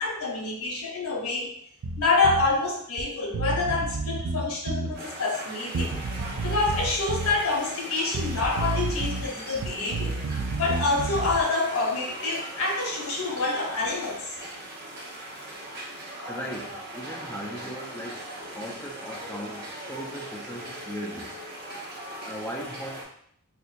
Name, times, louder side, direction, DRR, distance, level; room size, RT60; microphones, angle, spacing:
voice 1, 0.0-1.5 2.0-5.9 6.4-10.2 10.6-14.3, left 3 dB, 70° left, 0 dB, 0.8 m, -27 dB
Bass guitar, 1.8-2.5 3.0-3.1 3.3-5.0 5.7-7.4 8.1-9.3 9.5-11.4, right 3 dB, 90° right, 0.5 m, -30 dB
sound 1, 4.9-23.0, right 1 dB, 50° right, 0.9 m, -39 dB
voice 2, 16.3-18.3 18.6-21.4 22.2-23.1, equal, 10° left, -2 dB, 0.4 m, -38 dB
4.3 x 2.4 x 2.5 m, 0.66 s
head